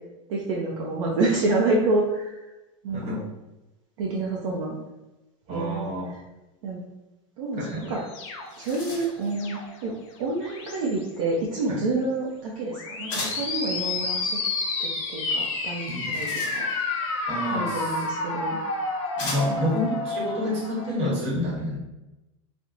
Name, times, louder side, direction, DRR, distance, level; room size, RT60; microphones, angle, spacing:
voice 1, 0.3-2.4 2.8-3.2 4.0-4.8 5.5-5.9 6.6-6.8 7.4-8.0 8.6-9.9 10.2-14.4 14.8-15.8 16.1-16.3 16.5-16.7 17.5-18.6 19.5-19.7, right 2 dB, 65° right, -3 dB, 0.5 m, -28 dB
voice 2, 2.9-3.2 5.5-6.1 7.6-7.9 11.7-11.8 15.9-16.2 17.3-18.1 19.2-21.8, left 1 dB, 35° right, -5 dB, 1.1 m, -29 dB
sound 1, 7.6-9.8 10.4-11.0 12.7-20.9, left 3 dB, 60° left, 0.5 m, -30 dB
sound 2, 8.0-8.1 8.3-9.3 13.1-13.6 15.8-17.0 18.1-18.2 19.2-19.7, left 2 dB, 40° left, 1.0 m, -36 dB
2.9 x 2.1 x 2.4 m, 1.0 s
hypercardioid pair, 125°, 18 cm